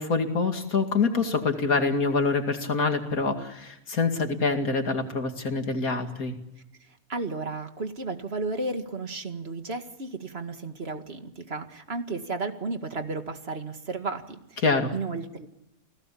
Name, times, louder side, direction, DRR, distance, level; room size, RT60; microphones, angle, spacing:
voice 1, 0.0-6.3 14.6-14.9, left 4 dB, 75° left, 5 dB, 2.8 m, -25 dB
voice 2, 6.8-14.6 14.9-15.5, right 3 dB, 45° right, 6 dB, 2.2 m, -33 dB
29.5 x 18.0 x 8.5 m, 0.86 s
omnidirectional pair, 1.5 m